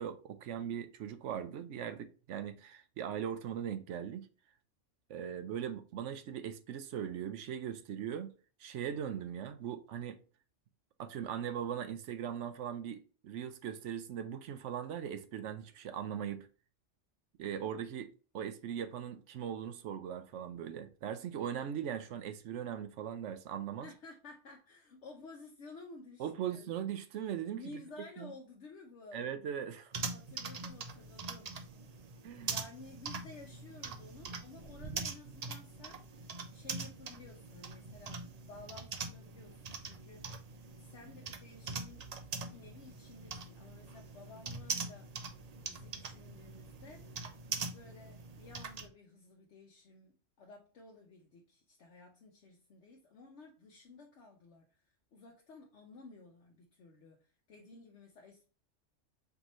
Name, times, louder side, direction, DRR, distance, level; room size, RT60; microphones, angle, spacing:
voice 1, 0.0-4.3 5.1-8.3 8.6-10.2 11.0-16.5 17.4-23.9 26.2-27.6 28.2-28.3 29.1-29.9 32.2-32.5, right 9 dB, 75° right, 0.9 m, -39 dB
voice 2, 23.8-26.7 27.6-29.3 30.1-31.6 32.4-42.1 42.4-45.1 45.6-47.1 47.5-54.8 55.1-58.5, left 3 dB, 70° left, 1.1 m, -54 dB
sound 1, 29.9-48.9, right 4 dB, 50° right, 0.5 m, -43 dB
4.5 x 2.9 x 3.0 m
omnidirectional pair, 1.2 m